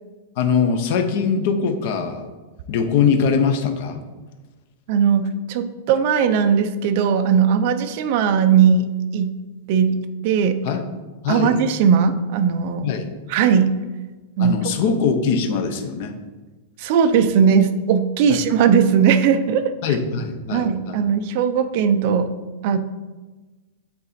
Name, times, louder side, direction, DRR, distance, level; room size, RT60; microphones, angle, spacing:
voice 1, 0.4-2.3 2.7-4.0 10.6-10.8 11.2-11.6 12.8-13.0 14.4-16.1 18.3-18.4 19.8-21.0, left 6 dB, 40° left, 7 dB, 0.7 m, -21 dB
voice 2, 4.9-9.3 9.7-10.0 10.2-10.6 11.3-12.9 13.3-13.7 14.4-14.7 16.8-19.7 20.5-22.3 22.6-22.8, right 7 dB, 40° right, 8 dB, 0.5 m, -18 dB
8.4 x 4.0 x 4.1 m, 1.2 s
supercardioid pair, 180°, 0 cm